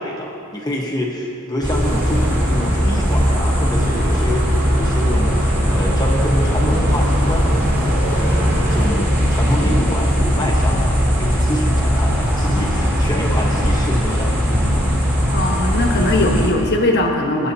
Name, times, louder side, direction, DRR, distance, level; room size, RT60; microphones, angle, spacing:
voice 1, 0.0-7.8 8.1-14.8, equal, 15° left, -1 dB, 1.2 m, -26 dB
sound 1, 1.6-16.5, equal, 10° right, 2.0 m, -18 dB
sound 2, 1.8-8.9, right 1 dB, 80° right, 2.2 m, -26 dB
voice 2, 15.3-17.5, left 1 dB, 50° left, 1 dB, 1.4 m, -19 dB
22.0 x 9.8 x 2.8 m, 2.6 s
head